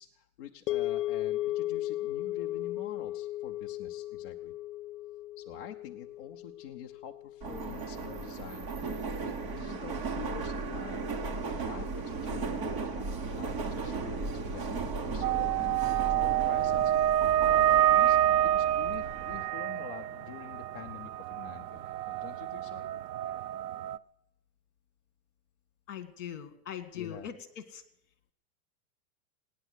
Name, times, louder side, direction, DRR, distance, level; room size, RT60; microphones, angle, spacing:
voice 1, 0.0-4.5 5.4-8.7 9.2-11.1 11.6-22.8 26.9-27.3, left 8 dB, 35° left, 3 dB, 0.6 m, -47 dB
sound 1, 0.7-9.0, left 14 dB, 90° left, 0.6 m, -36 dB
Subway metro underground, 7.4-19.4, right 4 dB, 15° right, 0.9 m, -36 dB
sound 2, 15.2-24.0, right 12 dB, 85° right, 0.7 m, -28 dB
voice 2, 25.9-27.8, left 9 dB, 50° left, 12 dB, 1.9 m, -41 dB
18.0 x 10.0 x 8.0 m, 0.76 s
supercardioid pair, 175°, 47 cm